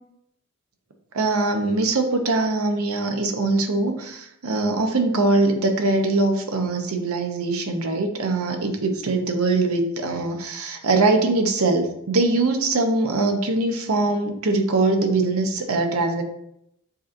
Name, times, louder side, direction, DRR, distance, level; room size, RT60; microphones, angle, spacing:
voice 1, 1.1-16.2, right 2 dB, 90° right, 5 dB, 0.7 m, -22 dB
7.2 x 2.9 x 2.5 m, 0.77 s
head